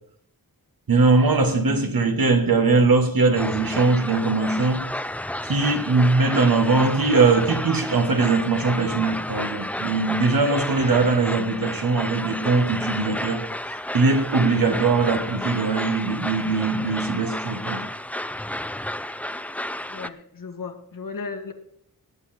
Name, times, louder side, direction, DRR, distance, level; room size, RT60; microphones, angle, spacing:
voice 1, 0.9-4.8 5.4-13.4 13.9-17.9, right 3 dB, 70° right, 6 dB, 1.8 m, -21 dB
sound 1, 3.3-20.1, left 1 dB, 5° left, 0.5 m, -32 dB
voice 2, 19.9-21.5, left 4 dB, 65° left, 6 dB, 1.7 m, -35 dB
18.5 x 7.8 x 4.5 m, 0.73 s
wide cardioid pair, 65°, 36 cm